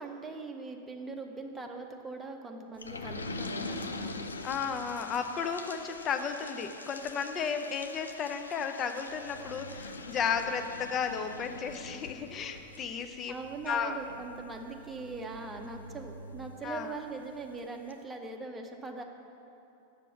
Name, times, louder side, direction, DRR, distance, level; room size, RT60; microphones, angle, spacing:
voice 1, 0.0-4.2 13.3-19.0, right 3 dB, 15° right, 3 dB, 0.8 m, -41 dB
sound 1, 2.8-17.1 17.5-17.6 17.9-18.0, left 2 dB, 75° left, 0.5 m, -44 dB
voice 2, 4.4-13.4 13.7-14.0 16.6-16.9, left 6 dB, 30° left, 7 dB, 0.6 m, -34 dB
7.1 x 6.9 x 7.1 m, 2.9 s
figure-of-eight pair, 90°, 0 cm